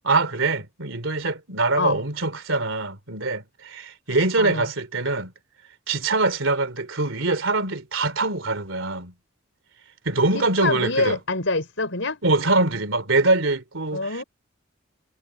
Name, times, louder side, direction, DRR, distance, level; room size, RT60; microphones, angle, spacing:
voice 1, 0.0-5.3 5.9-9.1 10.0-11.2 12.2-14.2, right 3 dB, 80° right, 2.8 m, -23 dB
voice 2, 10.3-12.2 13.9-14.2, left 3 dB, 70° left, 5.6 m, -26 dB
head